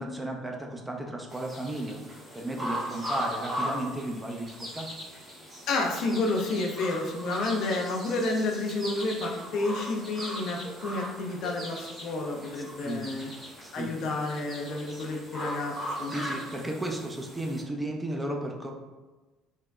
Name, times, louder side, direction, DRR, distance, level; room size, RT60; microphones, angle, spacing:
voice 1, 0.0-2.0 2.3-4.9 12.6-13.1 13.6-14.0 16.1-18.7, right 1 dB, 15° right, 1 dB, 0.5 m, -34 dB
sound 1, 1.3-17.6, equal, 30° right, 1.0 m, -38 dB
voice 2, 5.7-13.3 13.7-16.1, left 2 dB, 60° left, 0 dB, 0.4 m, -30 dB
3.4 x 2.2 x 2.3 m, 1.2 s
hypercardioid pair, 55°, 0 cm